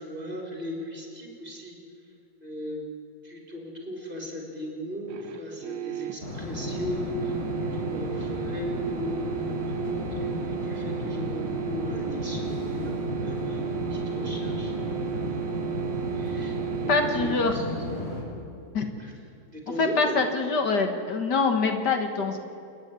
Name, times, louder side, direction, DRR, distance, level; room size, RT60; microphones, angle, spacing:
voice 1, 0.0-1.8 2.4-2.8 3.2-7.4 7.7-13.6 13.9-15.4 15.6-17.6 19.0-19.1 19.5-20.2, equal, 25° right, -1 dB, 4.0 m, -37 dB
sound 1, 5.1-17.3, right 14 dB, 85° right, 1.6 m, -34 dB
sound 2, 6.2-18.2, left 1 dB, 35° left, 6.8 m, -33 dB
voice 2, 16.9-17.6 18.7-18.9 19.8-22.4, left 4 dB, 70° left, 5 dB, 2.0 m, -24 dB
28.0 x 9.8 x 9.6 m, 2.5 s
omnidirectional pair, 2.0 m